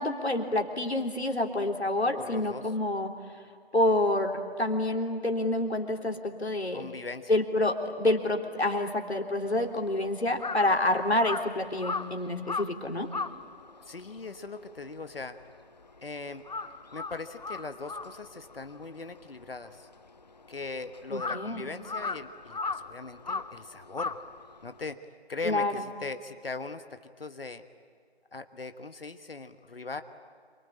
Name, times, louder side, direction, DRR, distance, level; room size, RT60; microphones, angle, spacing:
voice 1, 0.0-3.1 3.7-6.9 7.3-13.1 21.1-21.7 25.4-25.8, left 1 dB, 80° left, 3 dB, 3.6 m, -28 dB
voice 2, 2.1-2.7 6.7-7.3 13.8-15.4 16.0-16.4 16.9-19.9 20.5-24.2 24.6-25.0 25.3-27.6 28.3-30.0, left 3 dB, 60° left, 9 dB, 1.4 m, -40 dB
Crow, 9.5-16.0 16.3-24.9, left 4 dB, 40° left, 0.6 m, -38 dB
27.5 x 24.5 x 8.8 m, 2.2 s
figure-of-eight pair, 160°, 32 cm